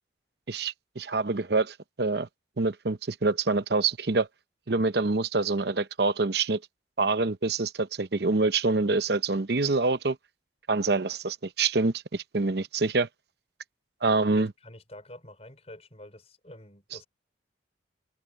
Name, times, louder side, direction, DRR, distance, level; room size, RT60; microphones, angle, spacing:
voice 1, 0.5-2.3 2.6-4.3 4.7-6.6 7.0-10.2 10.7-13.1 14.0-14.5, right 3 dB, 60° right, 0.8 m, -26 dB
voice 2, 14.3-17.1, left 1 dB, 35° left, 5.1 m, -48 dB
head